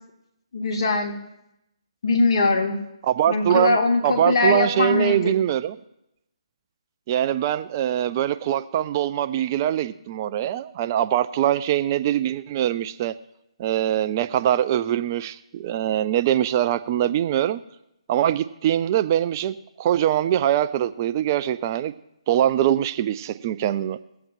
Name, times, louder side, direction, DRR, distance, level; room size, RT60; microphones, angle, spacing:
voice 1, 0.5-1.2 2.0-2.8 3.3-5.3, left 3 dB, 50° left, 0 dB, 2.1 m, -21 dB
voice 2, 3.0-3.8 4.0-5.8 7.1-13.1 13.6-17.6 18.1-21.9 22.3-24.0, right 11 dB, 30° right, 12 dB, 0.4 m, -23 dB
22.5 x 7.7 x 2.6 m, 0.85 s
figure-of-eight pair, 145°, 3 cm